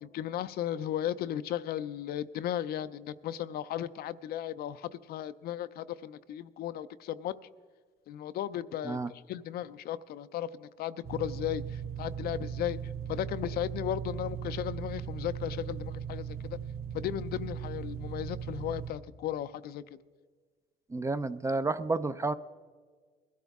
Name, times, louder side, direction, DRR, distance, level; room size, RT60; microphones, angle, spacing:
voice 1, 0.0-7.3 8.1-12.8 13.1-16.4 16.9-19.8, left 11 dB, 65° left, 0.5 m, -35 dB
sound 1, 11.0-18.9, right 8 dB, 65° right, 2.7 m, -38 dB
voice 2, 20.9-22.3, right 3 dB, 15° right, 0.4 m, -30 dB
21.0 x 12.5 x 3.5 m
cardioid pair, 110°, 17 cm